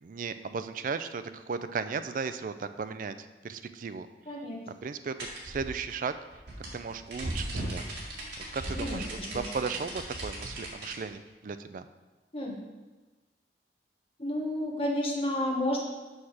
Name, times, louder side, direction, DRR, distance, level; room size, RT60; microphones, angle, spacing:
voice 1, 0.0-4.1 4.7-6.1 6.7-7.9 8.5-11.8, right 5 dB, 50° right, 10 dB, 0.4 m, -36 dB
voice 2, 4.3-4.6 8.7-9.4 12.3-12.6 14.2-15.8, left 1 dB, 35° left, -2 dB, 1.3 m, -31 dB
sound 1, 5.2-11.0, right 1 dB, 80° right, 1.9 m, -37 dB
6.4 x 5.8 x 4.9 m, 1.2 s
head